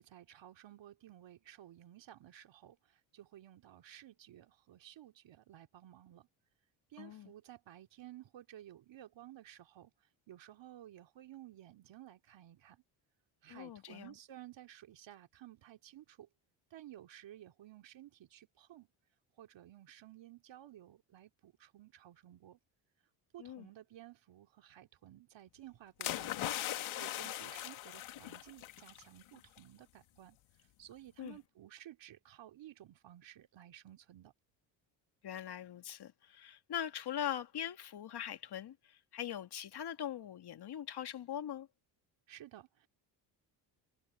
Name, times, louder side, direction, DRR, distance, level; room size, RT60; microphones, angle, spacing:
voice 1, 0.0-6.3 6.9-9.9 10.3-12.8 13.4-16.3 16.7-18.9 19.4-22.6 23.3-30.4 30.8-34.3 42.3-42.9, right 13 dB, 60° right, 2.7 m, -55 dB
voice 2, 7.0-7.3 13.5-14.1 23.4-23.7 31.2-31.4 35.2-41.7, left 10 dB, 50° left, 2.0 m, -42 dB
sound 1, 26.0-29.0 29.4-29.6, left 14 dB, 70° left, 2.5 m, -40 dB
supercardioid pair, 75°, 49 cm